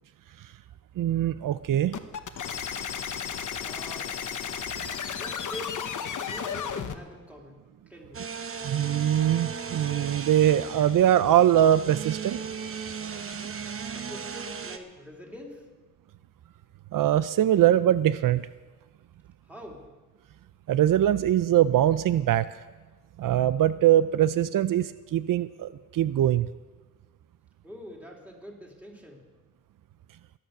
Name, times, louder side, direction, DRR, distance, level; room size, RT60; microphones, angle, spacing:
voice 1, 1.0-2.0 8.6-12.4 16.9-18.4 20.7-22.5 23.2-26.5, right 11 dB, 85° right, 15 dB, 0.5 m, -22 dB
sound 1, 1.9-7.0, left 7 dB, 70° left, 1.0 m, -33 dB
voice 2, 3.6-4.1 5.0-7.6 7.9-8.2 13.9-15.7 19.5-19.8 27.6-29.2, left 1 dB, 5° right, -1 dB, 3.1 m, -44 dB
sound 2, 8.1-14.8, right 6 dB, 45° right, 0.9 m, -37 dB
22.0 x 9.0 x 6.6 m, 1.3 s
wide cardioid pair, 135°, 32 cm